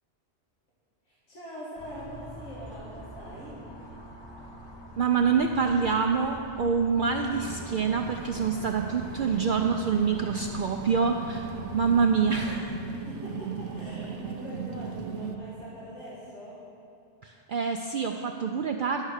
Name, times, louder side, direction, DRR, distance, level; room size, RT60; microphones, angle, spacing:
voice 1, 1.1-3.6 9.1-9.6 11.5-11.9 12.8-16.6, equal, 85° left, -9 dB, 2.3 m, -43 dB
sound 1, 1.8-12.7, equal, 25° left, 0.8 m, -45 dB
voice 2, 5.0-12.8 17.2-19.1, right 5 dB, 60° right, 3 dB, 0.6 m, -26 dB
sound 2, 7.3-15.4, right 6 dB, 85° right, 1.0 m, -38 dB
11.0 x 6.5 x 6.4 m, 2.5 s
omnidirectional pair, 1.2 m